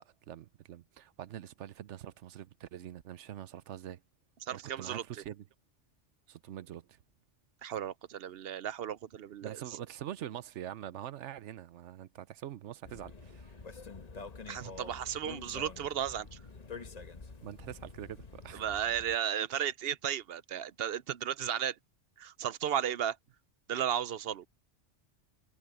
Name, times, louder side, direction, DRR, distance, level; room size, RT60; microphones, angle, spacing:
voice 1, 0.0-4.0 4.5-5.4 6.3-7.0 9.4-13.6 17.4-18.8, right 11 dB, 90° right, 1.0 m, -44 dB
voice 2, 4.4-5.0 7.6-9.6 14.5-16.3 18.5-21.8 22.2-23.2 23.7-24.5, right 9 dB, 65° right, 0.8 m, -34 dB
sound 1, 12.8-19.2, left 4 dB, 35° left, 1.2 m, -47 dB
omnidirectional pair, 1.2 m